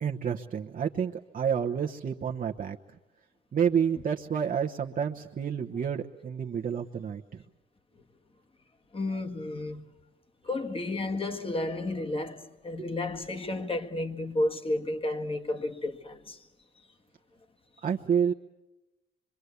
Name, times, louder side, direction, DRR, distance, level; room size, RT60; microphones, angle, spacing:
voice 1, 0.0-2.8 3.5-7.4 12.8-12.9 17.8-18.3, right 7 dB, 45° right, 1.1 m, -29 dB
voice 2, 8.9-9.9 10.5-16.4, left 2 dB, 25° left, 1.7 m, -32 dB
25.0 x 24.0 x 8.2 m
cardioid pair, 90°, 20 cm